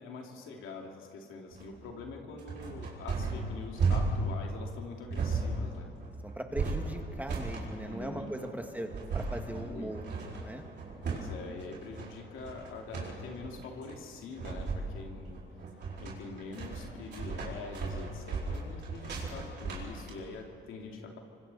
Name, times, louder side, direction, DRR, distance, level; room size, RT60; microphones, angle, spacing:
voice 1, 0.0-5.9 7.9-8.3 8.6-8.7 9.4-10.2 11.0-15.4 16.0-21.2, left 4 dB, 85° left, 1 dB, 2.7 m, -44 dB
sound 1, 1.5-20.1, right 4 dB, 60° right, 5.1 m, -35 dB
voice 2, 6.2-10.0 10.4-10.6, right 1 dB, 10° right, 4 dB, 2.0 m, -39 dB
26.0 x 24.5 x 4.2 m, 2.6 s
cardioid pair, 90°, 20 cm